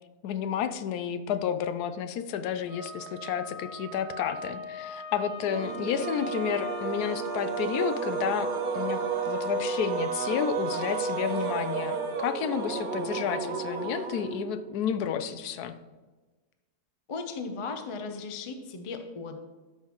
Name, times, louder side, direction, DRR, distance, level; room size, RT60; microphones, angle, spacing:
voice 1, 0.2-15.7, left 8 dB, 80° left, 11 dB, 1.1 m, -31 dB
Wind instrument woodwind instrument, 2.7-7.4, left 1 dB, 10° right, 1.9 m, -42 dB
sound 1, 5.4-14.7, right 5 dB, 80° right, 0.4 m, -32 dB
voice 2, 17.1-19.4, left 4 dB, 50° left, 6 dB, 0.3 m, -36 dB
12.0 x 5.7 x 3.0 m, 1.3 s
omnidirectional pair, 1.7 m